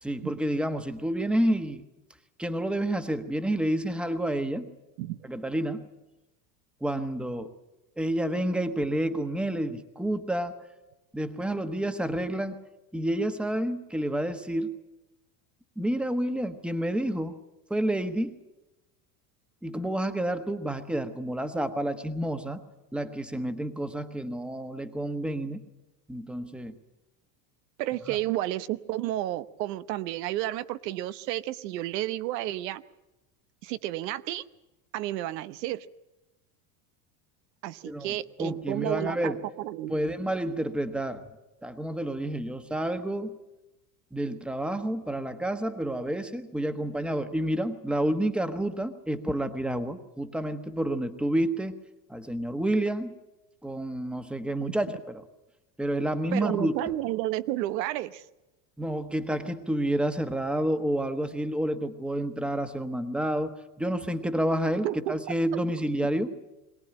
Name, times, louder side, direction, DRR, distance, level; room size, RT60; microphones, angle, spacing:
voice 1, 0.0-1.8 2.4-4.7 5.2-5.9 6.8-7.5 8.0-10.5 11.1-12.6 12.9-14.7 15.8-17.3 17.7-18.3 19.6-22.6 22.9-25.6 26.1-26.7 28.1-28.2 37.8-39.4 39.9-41.3 41.6-43.4 44.1-51.7 52.1-53.1 53.6-55.2 55.8-56.7 58.8-66.3, right 1 dB, ahead, 9 dB, 1.2 m, -29 dB
voice 2, 27.8-32.8 33.6-34.4 34.9-35.9 37.6-39.9 56.3-58.2 64.8-65.1, right 14 dB, 85° right, 14 dB, 1.0 m, -31 dB
22.5 x 18.0 x 8.9 m, 1.0 s
supercardioid pair, 135°, 48 cm